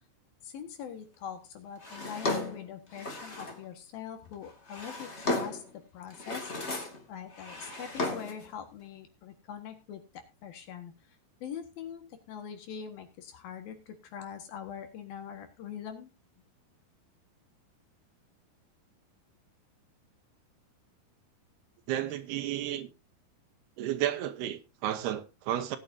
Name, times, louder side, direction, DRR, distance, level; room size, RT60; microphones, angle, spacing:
voice 1, 0.4-11.0 11.4-16.1, left 8 dB, 70° left, 3.2 m, -43 dB
Drawer open or close, 1.8-3.6 4.4-5.7 6.1-7.0 7.3-8.5, left 2 dB, 25° left, 1.5 m, -35 dB
voice 2, 21.9-22.9 23.8-25.8, right 12 dB, 85° right, 3.0 m, -32 dB
19.0 x 9.3 x 2.7 m
omnidirectional pair, 4.6 m